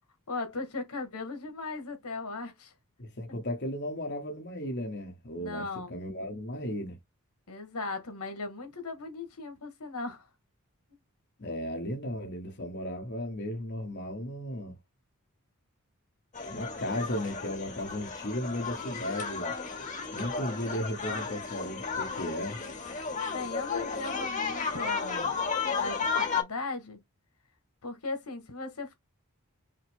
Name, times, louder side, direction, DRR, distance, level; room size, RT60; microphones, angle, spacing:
voice 1, 0.3-2.7 5.4-6.0 7.5-10.3 23.3-25.4 25.8-27.0 27.8-28.9, left 3 dB, 80° left, 1.6 m, -37 dB
voice 2, 3.0-7.0 11.4-14.7 16.5-19.5 20.1-22.6, left 1 dB, 50° left, 1.3 m, -35 dB
sound 1, 16.3-26.4, left 5 dB, 35° left, 1.5 m, -33 dB
5.6 x 2.2 x 3.6 m
head